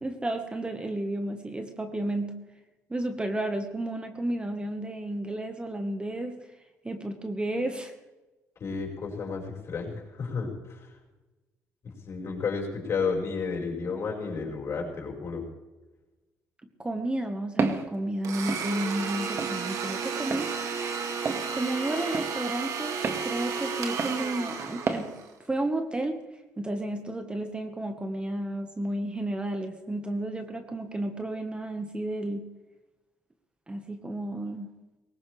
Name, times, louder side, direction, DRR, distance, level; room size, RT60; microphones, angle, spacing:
voice 1, 0.0-2.4 2.9-6.4 6.8-7.9 16.8-20.5 21.5-23.0 23.2-25.1 25.5-26.2 26.6-32.4 33.7-34.7, right 1 dB, 15° right, 6 dB, 1.4 m, -32 dB
voice 2, 8.6-10.8 12.0-15.4, left 5 dB, 50° left, -1 dB, 5.4 m, -32 dB
Walk footsteps, 17.6-17.9 18.5-18.6 19.4-19.6 20.3-20.5 21.2-21.4 22.1-22.3 23.0-23.2 24.0-24.2 24.9-25.0, right 4 dB, 40° right, 1.7 m, -29 dB
Domestic sounds home sounds, 18.2-25.3, right 5 dB, 65° right, 2.3 m, -33 dB
20.0 x 17.5 x 3.4 m, 1.1 s
cardioid pair, 95°, 6 cm